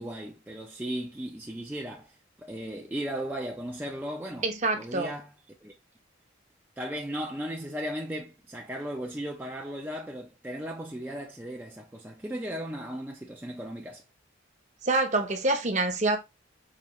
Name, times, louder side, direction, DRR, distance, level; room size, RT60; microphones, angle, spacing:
voice 1, 0.0-5.3 5.6-5.7 6.8-14.0, right 1 dB, 10° right, 0.4 m, -36 dB
voice 2, 4.4-5.1 14.8-16.2, right 2 dB, 35° right, 0.7 m, -26 dB
4.9 x 2.7 x 3.0 m
head